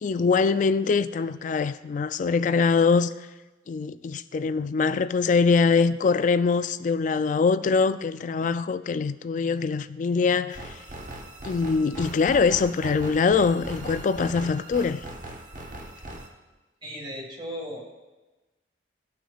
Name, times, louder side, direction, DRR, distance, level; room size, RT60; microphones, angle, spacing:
voice 1, 0.0-3.1 3.7-10.6 11.4-15.0, left 5 dB, 45° left, 0.3 m, -23 dB
sound 1, 10.5-16.3, right 1 dB, 50° right, 1.1 m, -39 dB
voice 2, 16.8-18.0, equal, 25° right, 1.9 m, -36 dB
17.0 x 6.1 x 2.4 m
head